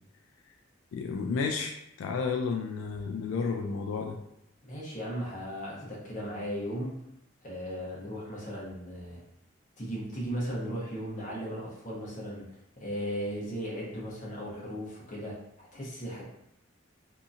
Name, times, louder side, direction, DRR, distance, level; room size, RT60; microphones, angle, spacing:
voice 1, 0.9-4.2, left 5 dB, 90° left, 3 dB, 0.3 m, -32 dB
voice 2, 4.7-7.0 7.4-9.2 9.8-12.5 12.8-16.3, equal, 40° left, -5 dB, 0.9 m, -36 dB
2.7 x 2.6 x 2.4 m, 0.81 s
head